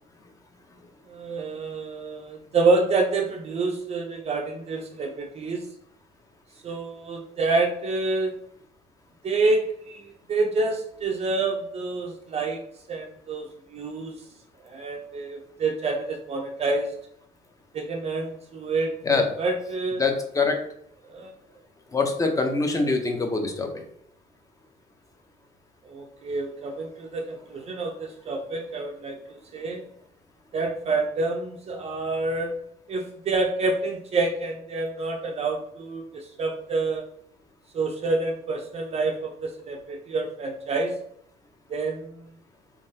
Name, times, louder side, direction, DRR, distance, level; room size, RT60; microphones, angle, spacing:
voice 1, 1.1-5.7 6.6-8.3 9.2-14.3 14.6-16.9 17.7-20.0 21.0-21.3 25.8-29.8 30.5-32.6 32.9-37.0 37.7-41.0 41.7-42.3, right 3 dB, 40° right, 2 dB, 0.5 m, -28 dB
voice 2, 19.0-19.3 19.9-20.6 21.9-23.8, left 3 dB, 20° left, 4 dB, 0.7 m, -24 dB
3.6 x 3.0 x 2.7 m, 0.69 s
cardioid pair, 110°, 17 cm